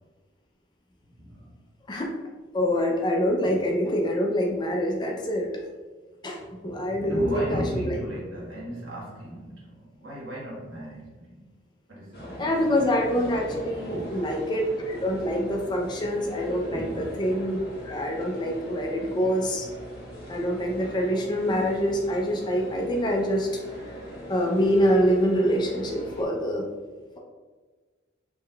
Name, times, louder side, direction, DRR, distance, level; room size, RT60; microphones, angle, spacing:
voice 1, 1.1-1.5 6.4-11.4 11.9-12.5 13.9-14.2 16.7-17.1, equal, 75° right, -6 dB, 1.2 m, -36 dB
voice 2, 2.5-5.5 6.2-8.0 12.4-17.6 17.8-19.7 20.3-23.5 23.8-24.0 24.3-26.6, equal, 20° left, 0 dB, 0.3 m, -25 dB
sound 1, 12.1-26.3, equal, 50° left, 0.9 m, -40 dB
3.5 x 3.3 x 2.2 m, 1.4 s
head